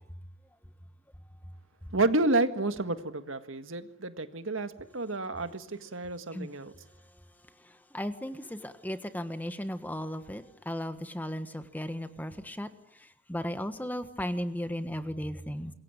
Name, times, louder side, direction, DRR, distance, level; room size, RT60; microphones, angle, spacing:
voice 1, 1.9-6.7, right 2 dB, 75° right, 9 dB, 1.8 m, -30 dB
voice 2, 7.9-12.7 13.3-15.7, equal, 10° left, 9 dB, 1.4 m, -35 dB
26.5 x 22.5 x 8.9 m, 0.77 s
head